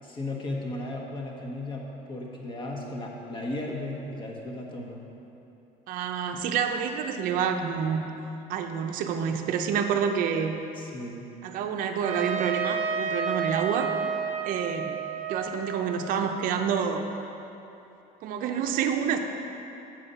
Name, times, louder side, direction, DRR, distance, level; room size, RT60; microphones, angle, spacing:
voice 1, 0.0-5.0 6.3-6.4 10.8-11.2, left 2 dB, 30° left, 0 dB, 1.1 m, -35 dB
voice 2, 5.9-8.0 8.5-10.6 11.4-13.9 14.4-15.0 15.3-17.0 18.2-19.2, right 7 dB, 55° right, 5 dB, 0.6 m, -28 dB
Trumpet, 12.0-16.9, right 6 dB, 35° right, 1.0 m, -31 dB
7.7 x 5.6 x 5.4 m, 3.0 s
cardioid pair, 150°, 17 cm